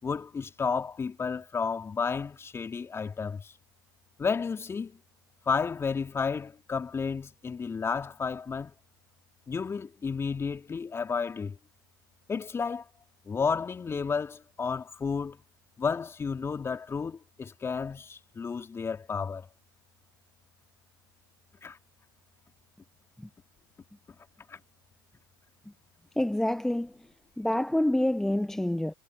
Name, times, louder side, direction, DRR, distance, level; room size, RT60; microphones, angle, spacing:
voice 1, 0.0-3.5 4.2-5.0 5.4-8.7 9.5-11.6 12.3-12.9 13.2-15.4 15.8-19.5 21.6-21.8 24.5-24.6, left 5 dB, 20° left, 3.6 m, -32 dB
voice 2, 26.2-26.9 27.4-28.9, left 1 dB, 5° left, 1.2 m, -27 dB
hypercardioid pair, 90°, 12 cm